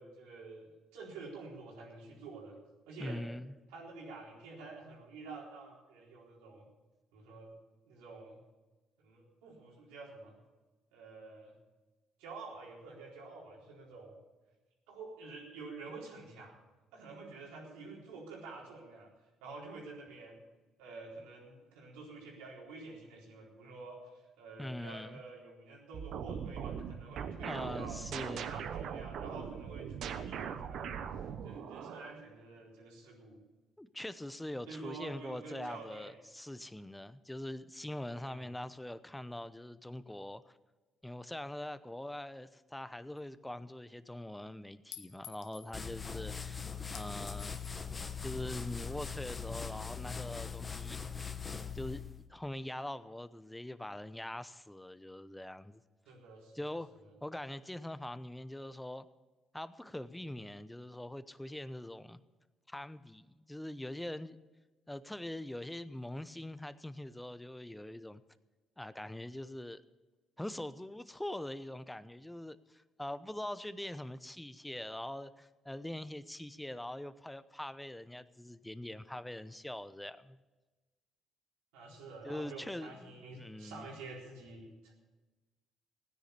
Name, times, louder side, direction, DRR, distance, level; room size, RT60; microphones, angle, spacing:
voice 1, 0.0-2.5 2.9-3.2 3.7-6.6 7.1-7.5 7.8-8.4 9.0-10.3 10.9-11.5 12.2-14.1 14.9-16.6 16.9-19.1 19.4-20.4 20.8-28.0 28.5-31.0 31.4-33.4 34.7-36.2 38.2-38.5 56.1-56.8 57.0-57.1 81.7-84.9, right 3 dB, 90° right, 4.1 m, -49 dB
voice 2, 3.0-3.6 24.6-25.2 27.4-28.5 33.8-40.6 41.0-47.6 48.2-51.0 51.7-52.0 52.3-55.8 56.5-56.9 57.2-59.1 59.5-62.2 62.7-64.4 64.9-68.2 68.8-69.8 70.4-80.4 82.2-83.9, left 1 dB, 10° left, 0.8 m, -43 dB
sound 1, 25.9-32.1, right 7 dB, 70° right, 1.1 m, -40 dB
Chink clink, 43.2-43.3 44.9-45.7 46.9-47.8, left 11 dB, 80° left, 0.9 m, -51 dB
sound 2, 45.7-52.2, left 6 dB, 30° left, 1.1 m, -41 dB
16.0 x 10.0 x 6.8 m
supercardioid pair, 65°, 0 cm